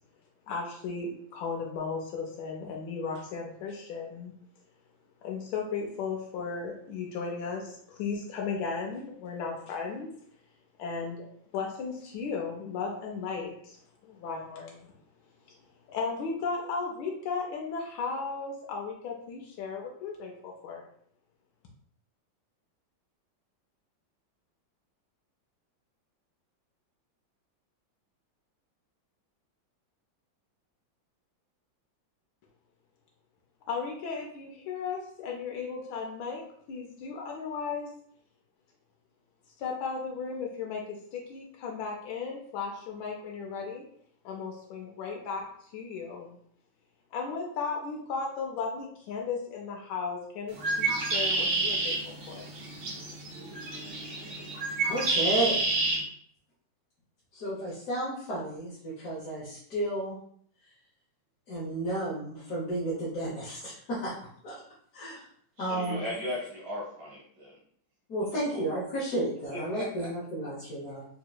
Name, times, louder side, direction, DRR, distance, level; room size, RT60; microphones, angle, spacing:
voice 1, 0.5-4.3 5.2-10.1 10.8-11.3 11.5-14.9 15.9-20.8 33.7-37.9 39.6-43.8 44.2-46.4 47.1-52.5, left 5 dB, 85° left, 0 dB, 1.4 m, -35 dB
Bird, 50.5-56.0, right 2 dB, 80° right, 1.7 m, -29 dB
voice 2, 54.8-55.6 57.3-60.1 61.5-64.1 64.4-64.5 64.9-65.2 65.6-66.0 68.1-71.0, right 1 dB, 55° left, -8 dB, 1.2 m, -32 dB
voice 3, 65.6-67.5 68.5-68.7 69.5-70.1, left 1 dB, 60° right, -3 dB, 1.5 m, -37 dB
4.1 x 2.8 x 2.2 m, 0.63 s
omnidirectional pair, 2.1 m